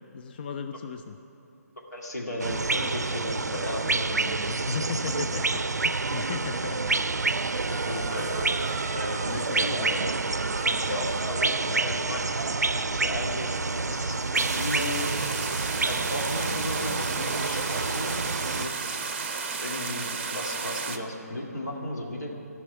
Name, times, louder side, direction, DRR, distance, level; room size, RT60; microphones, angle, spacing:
voice 1, 0.1-1.2 4.5-6.8 9.3-10.1, left 6 dB, 35° left, 7 dB, 0.3 m, -36 dB
voice 2, 1.9-4.8 7.7-8.5 9.0-9.2 9.6-10.0 10.8-12.2 12.7-14.2 14.5-15.1 15.8-18.1 18.6-19.0 19.6-22.3, left 1 dB, 80° left, -1 dB, 2.1 m, -35 dB
sound 1, 2.4-18.7, right 3 dB, 75° right, 0.4 m, -28 dB
sound 2, 6.4-16.7, right 4 dB, 25° right, 1.2 m, -44 dB
sound 3, 14.3-21.0, right 5 dB, 40° right, 0.7 m, -33 dB
12.0 x 6.2 x 9.2 m, 2.9 s
figure-of-eight pair, 145°, 9 cm